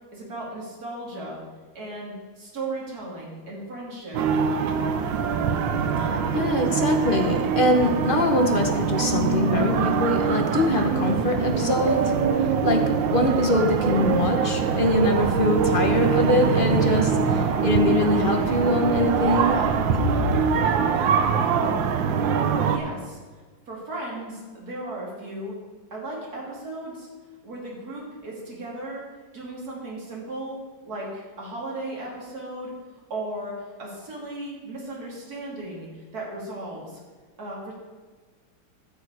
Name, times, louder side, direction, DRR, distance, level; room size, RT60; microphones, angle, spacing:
voice 1, 0.1-1.4 1.7-4.2 22.1-22.3 22.6-23.2 23.7-25.5 25.9-27.1 27.4-29.0 29.3-30.6 30.8-32.7 33.1-37.0 37.4-37.7, right 2 dB, 50° right, -3 dB, 3.2 m, -36 dB
sound 1, 4.1-22.8, right 6 dB, 75° right, 1.5 m, -23 dB
voice 2, 6.0-19.7 19.9-20.1, left 2 dB, 40° left, 4 dB, 0.8 m, -24 dB
15.0 x 6.6 x 4.8 m, 1.4 s
omnidirectional pair, 2.2 m